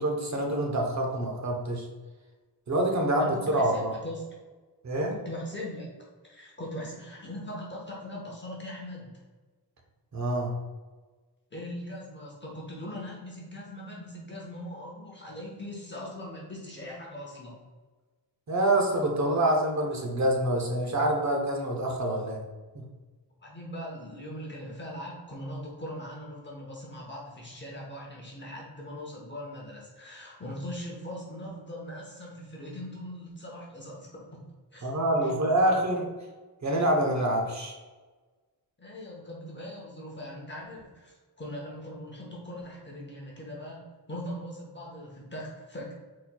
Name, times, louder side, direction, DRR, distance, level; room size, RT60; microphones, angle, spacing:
voice 1, 0.0-1.9 2.7-3.9 4.8-5.2 10.1-10.5 18.5-22.4 22.7-22.8 34.8-36.1 36.6-37.8, right 1 dB, 40° right, 1 dB, 0.8 m, -26 dB
voice 2, 3.2-4.2 5.1-5.9 6.2-9.1 11.5-17.6 23.4-34.4 34.7-34.9 35.2-35.3 38.8-45.9, left 1 dB, 25° left, -3 dB, 0.8 m, -40 dB
4.3 x 4.1 x 2.2 m, 1.3 s
wide cardioid pair, 165°, 43 cm